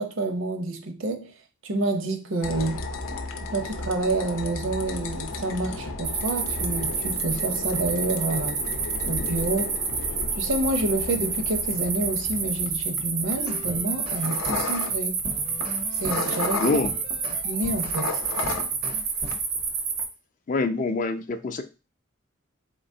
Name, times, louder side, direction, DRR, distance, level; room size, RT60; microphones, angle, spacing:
voice 1, 0.0-1.3 1.6-2.8 3.5-8.6 9.1-9.8 10.4-15.2 16.0-16.6 17.4-18.2, right 2 dB, 65° right, 0.6 m, -28 dB
sound 1, 2.4-17.4 17.6-19.0 19.2-19.7, left 3 dB, 75° left, 0.6 m, -34 dB
sound 2, 6.0-20.1, right 5 dB, 85° right, 1.1 m, -29 dB
sound 3, 13.3-14.8 15.2-18.0 18.4-19.4, right 1 dB, 25° right, 0.4 m, -39 dB
voice 2, 16.6-16.9 20.5-21.6, left 3 dB, 35° left, 0.3 m, -25 dB
4.0 x 3.7 x 2.6 m
head